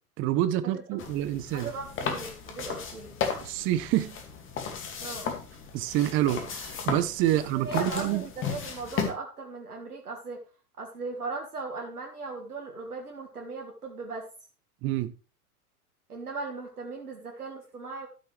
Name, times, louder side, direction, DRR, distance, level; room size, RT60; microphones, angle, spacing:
voice 1, 0.2-1.7 3.4-4.2 5.7-8.2 14.8-15.1, right 13 dB, 25° right, 0.8 m, -27 dB
sound 1, 1.0-9.1, left 6 dB, 25° left, 2.3 m, -35 dB
voice 2, 1.5-3.2 5.0-5.3 7.6-10.4 10.8-14.3 16.1-18.1, right 3 dB, 75° right, 1.8 m, -38 dB
13.5 x 7.8 x 3.3 m
figure-of-eight pair, 90°, 45 cm